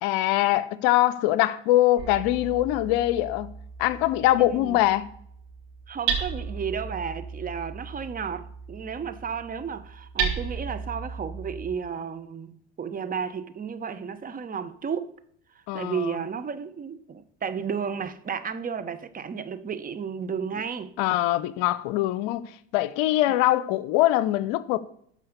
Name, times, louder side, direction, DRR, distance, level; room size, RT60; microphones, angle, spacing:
voice 1, 0.0-3.5 3.8-5.1 15.7-16.1 21.0-24.8, left 15 dB, 65° left, 0.7 m, -23 dB
Hammer, 2.0-11.7, right 6 dB, 60° right, 3.1 m, -35 dB
voice 2, 5.9-15.1 15.7-20.9 23.3-23.4, right 6 dB, 25° right, 1.0 m, -33 dB
12.5 x 5.0 x 6.7 m
hypercardioid pair, 75°, 31 cm